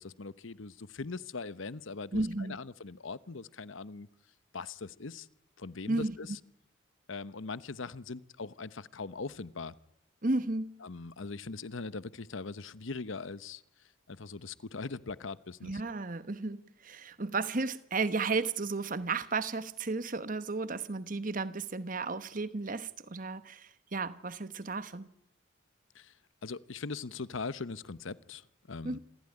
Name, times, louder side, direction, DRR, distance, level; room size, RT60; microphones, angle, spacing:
voice 1, 0.0-4.1 4.5-5.3 5.6-6.4 7.1-9.7 10.8-13.6 14.1-15.8 25.9-26.1 26.4-29.0, left 4 dB, 70° left, 0.9 m, -41 dB
voice 2, 2.1-2.6 5.9-6.1 10.2-10.8 15.6-25.1 28.8-29.0, right 3 dB, 40° right, 1.1 m, -33 dB
27.0 x 15.5 x 9.9 m
head